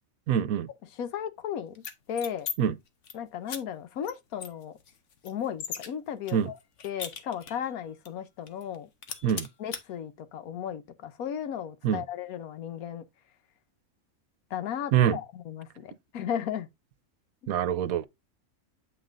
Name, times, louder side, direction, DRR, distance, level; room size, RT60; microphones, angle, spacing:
voice 1, 0.3-0.7 2.6-2.7 6.3-6.5 9.2-9.5 11.8-12.0 14.9-15.2 17.5-18.1, right 9 dB, 80° right, 1.2 m, -25 dB
voice 2, 1.0-1.8 2.1-2.5 3.1-4.8 5.2-6.6 6.8-8.9 9.6-13.0 14.5-16.7 17.4-17.5, left 9 dB, 90° left, 1.2 m, -35 dB
sound 1, 1.7-2.5 2.9-3.1 3.5-3.6 4.0-4.1 4.4-5.9 6.3-7.7 8.0-8.1 8.5-8.7 9.0-9.8, left 7 dB, 60° left, 1.2 m, -38 dB
8.1 x 5.6 x 2.5 m
omnidirectional pair, 1.5 m